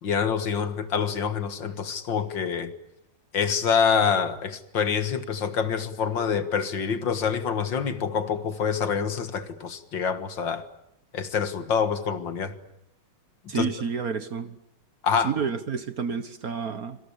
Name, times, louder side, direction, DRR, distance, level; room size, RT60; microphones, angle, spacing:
voice 1, 0.0-2.7 3.3-10.7 11.1-12.5 13.5-13.7 15.0-15.3, left 6 dB, 65° left, 2.3 m, -26 dB
voice 2, 13.5-14.6 15.2-17.0, right 6 dB, 50° right, 1.5 m, -29 dB
26.0 x 25.5 x 8.4 m
omnidirectional pair, 2.3 m